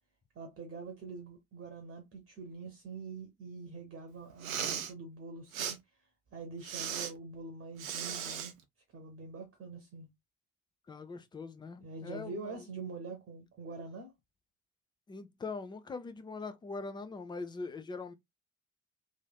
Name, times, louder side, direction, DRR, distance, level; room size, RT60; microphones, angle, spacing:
voice 1, 0.3-5.8 6.3-8.5 8.9-10.1 11.8-14.1, right 3 dB, 30° right, 1.0 m, -45 dB
Respiratory sounds, 4.3-4.9 5.5-5.8 6.6-7.1 7.8-8.5, right 8 dB, 75° right, 0.6 m, -36 dB
voice 2, 10.9-12.6 15.1-18.1, left 4 dB, 10° left, 0.4 m, -42 dB
3.2 x 2.5 x 2.2 m
figure-of-eight pair, 50°, 41 cm